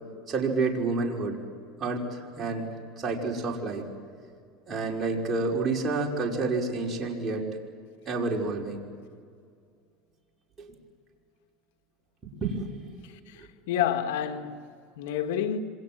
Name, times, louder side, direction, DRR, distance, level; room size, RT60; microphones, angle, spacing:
voice 1, 0.3-1.4 1.8-2.7 3.0-3.8 4.7-7.5 8.1-8.8 10.6-10.7 12.4-12.7 13.4-13.5, right 3 dB, 25° right, 5.5 m, -29 dB
voice 2, 13.0-15.6, left 9 dB, 85° left, 2.1 m, -30 dB
28.0 x 26.5 x 7.8 m
supercardioid pair, 125°, 0 cm